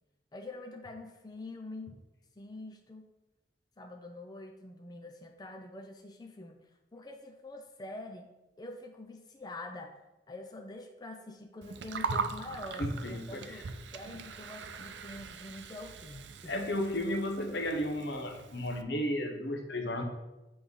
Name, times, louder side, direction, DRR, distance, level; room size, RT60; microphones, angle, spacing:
voice 1, 0.3-2.0 2.4-3.1 3.8-8.3 8.6-10.0 10.3-13.7 13.9-16.6 20.0-20.1, left 2 dB, 25° left, 4 dB, 0.5 m, -45 dB
Gurgling, 11.6-18.8, right 4 dB, 85° right, 0.5 m, -40 dB
voice 2, 12.8-13.6 16.5-20.0, left 1 dB, 70° left, 4 dB, 1.0 m, -34 dB
8.1 x 3.3 x 5.4 m, 1.0 s
head